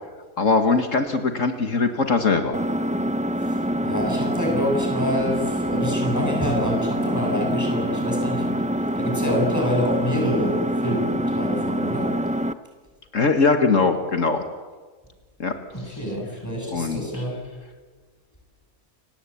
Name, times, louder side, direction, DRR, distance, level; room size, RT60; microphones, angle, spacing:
voice 1, 0.4-2.6 13.1-14.4 15.4-15.5 16.7-17.0, left 4 dB, 60° left, 6 dB, 2.1 m, -21 dB
Engine, 2.5-12.5, equal, 10° right, 0.4 m, -25 dB
voice 2, 3.4-8.6 9.0-12.2 15.7-17.4, equal, 10° left, 0 dB, 7.6 m, -27 dB
29.5 x 18.5 x 8.6 m, 1.4 s
omnidirectional pair, 1.5 m